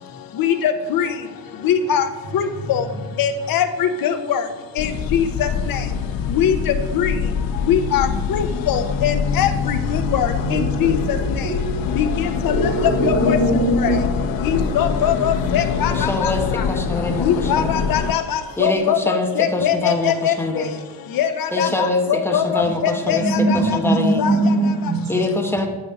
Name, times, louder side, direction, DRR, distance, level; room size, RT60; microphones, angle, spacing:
voice 1, 0.4-1.1 1.6-2.1 2.3-2.9 3.2-4.4 4.8-5.8 6.3-6.6 6.9-7.1 7.7-11.4 12.0-12.7 13.0-13.4 13.8-14.0 14.4-16.3 17.2-20.7 21.2-23.8 24.2-24.3, left 8 dB, 50° left, 7 dB, 0.9 m, -22 dB
sound 1, 4.8-18.1, left 6 dB, 85° left, 0.9 m, -24 dB
voice 2, 9.9-12.0 12.5-14.1 22.6-22.7 23.0-25.2, right 2 dB, 60° right, -4 dB, 2.8 m, -22 dB
voice 3, 15.9-17.8 18.6-20.7 21.5-24.3 25.1-25.7, left 2 dB, 5° left, 2 dB, 1.1 m, -24 dB
9.4 x 6.3 x 7.6 m, 1.2 s
cardioid pair, 175°, 45 cm